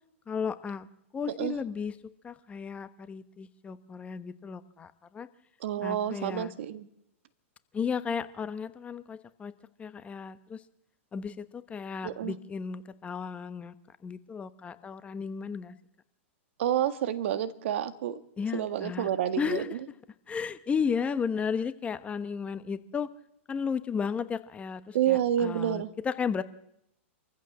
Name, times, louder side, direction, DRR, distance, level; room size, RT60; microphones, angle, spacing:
voice 1, 0.3-0.9 1.1-1.9 2.2-5.3 5.8-6.5 7.7-9.5 9.8-10.6 11.1-13.7 14.0-15.7 18.4-19.1 19.4-19.8 20.3-23.1 23.5-26.4, left 6 dB, 15° left, 12 dB, 1.1 m, -34 dB
voice 2, 5.6-6.9 12.0-12.3 16.6-18.2 18.5-19.8 24.9-25.9, right 10 dB, 65° right, 11 dB, 1.7 m, -29 dB
26.5 x 15.0 x 7.6 m, 0.81 s
hypercardioid pair, 120°, 7 cm